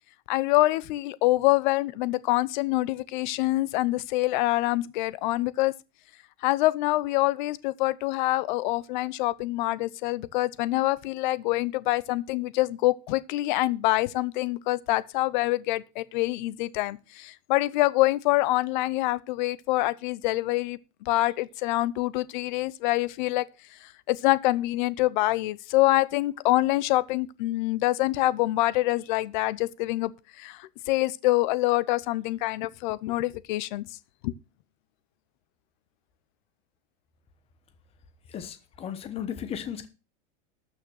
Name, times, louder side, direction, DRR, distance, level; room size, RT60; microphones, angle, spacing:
voice 1, 0.3-5.7 6.4-23.4 23.8-30.1 30.4-33.8 34.2-34.3, left 18 dB, 40° left, 0.7 m, -25 dB
voice 2, 38.3-39.9, left 9 dB, 15° left, 1.1 m, -35 dB
13.0 x 6.5 x 6.3 m
supercardioid pair, 170°, 35 cm